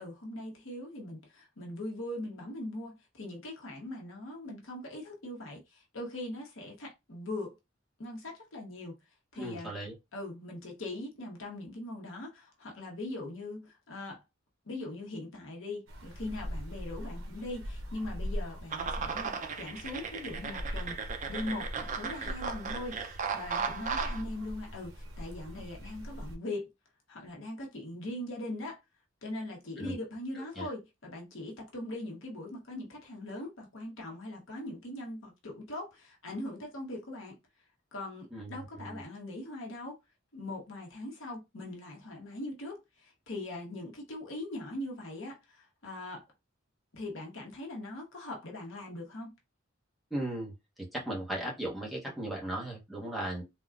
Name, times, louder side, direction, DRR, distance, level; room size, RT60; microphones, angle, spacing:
voice 1, 0.0-7.6 8.0-9.0 9.3-9.7 10.1-14.2 14.7-26.7 27.1-28.8 29.2-37.4 37.9-39.9 40.3-46.2 46.9-49.3, left 1 dB, 80° left, 0.9 m, -41 dB
voice 2, 9.4-10.0 29.8-30.0 30.3-30.7 38.3-39.0 50.1-50.5 50.9-53.4, right 1 dB, ahead, 0.9 m, -37 dB
sound 1, 15.9-26.4, equal, 85° right, 0.7 m, -41 dB
sound 2, 18.7-24.2, right 5 dB, 40° right, 0.5 m, -36 dB
3.5 x 2.2 x 2.4 m
head